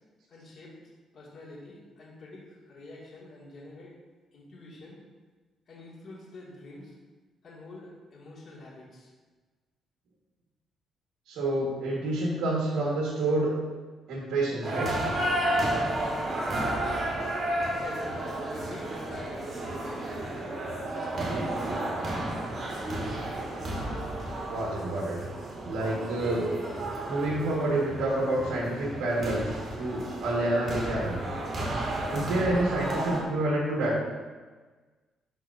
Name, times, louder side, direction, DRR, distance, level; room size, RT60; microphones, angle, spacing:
voice 1, 0.3-0.7 1.1-3.9 4.3-5.0 5.7-6.9 7.4-9.1 17.6-18.2 18.5-19.5 19.8-20.5 20.8-21.4, left 2 dB, 55° left, -6 dB, 2.2 m, -47 dB
voice 2, 11.3-13.5 14.1-14.9 24.4-25.2 25.6-26.5 27.0-31.2 32.1-34.0, right 2 dB, 85° right, -3 dB, 1.7 m, -28 dB
sound 1, 14.6-33.2, right 1 dB, 45° right, 2.2 m, -32 dB
12.0 x 4.6 x 2.7 m, 1.3 s
cardioid pair, 90°, 0 cm